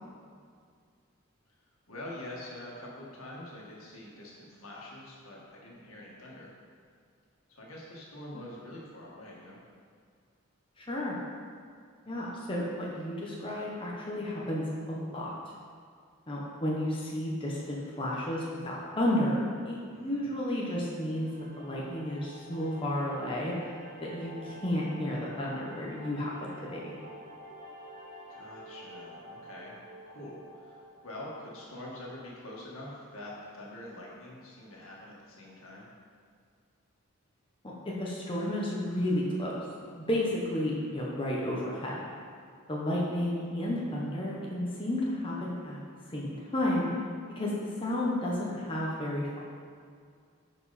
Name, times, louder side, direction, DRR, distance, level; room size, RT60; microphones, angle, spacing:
voice 1, 1.9-6.5 7.5-9.6 19.9-20.3 28.3-29.8 30.1-35.9, left 1 dB, 80° left, -4 dB, 1.9 m, -45 dB
voice 2, 10.8-11.2 12.1-15.3 16.3-23.6 24.0-26.4 26.6-27.0 37.6-39.5 40.1-42.1 42.7-45.8 46.1-46.9 47.4-49.4, left 1 dB, 25° left, -5 dB, 1.1 m, -32 dB
sound 1, 21.1-32.2, right 1 dB, 45° right, 1.9 m, -49 dB
11.0 x 5.0 x 4.2 m, 2.2 s
head